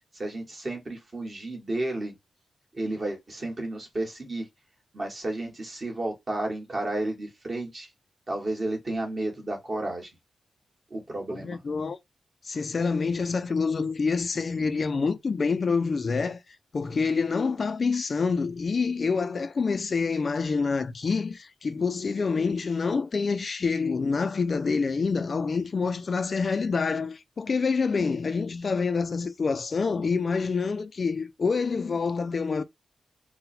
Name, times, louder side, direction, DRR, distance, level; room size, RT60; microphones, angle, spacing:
voice 1, 0.1-2.1 2.7-4.5 4.9-7.9 8.3-10.1 10.9-11.6, right 1 dB, 30° right, 1.3 m, -32 dB
voice 2, 11.3-12.0 12.4-32.6, left 4 dB, 40° left, 0.3 m, -27 dB
3.9 x 2.1 x 4.2 m
wide cardioid pair, 175°, 0 cm